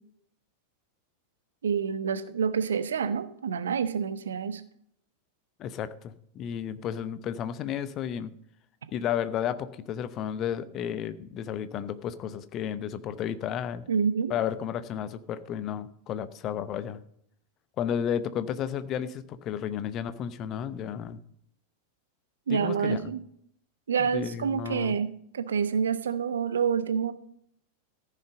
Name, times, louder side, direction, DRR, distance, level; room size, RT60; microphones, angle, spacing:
voice 1, 1.6-4.6 13.9-14.3 22.5-23.2 23.9-27.1, right 6 dB, 65° right, 13 dB, 0.8 m, -28 dB
voice 2, 5.6-8.3 8.9-13.8 14.3-17.0 17.8-21.2 22.5-23.1 24.0-24.9, left 9 dB, 35° left, 13 dB, 0.8 m, -32 dB
14.5 x 6.7 x 5.2 m, 0.69 s
figure-of-eight pair, 90°, 0 cm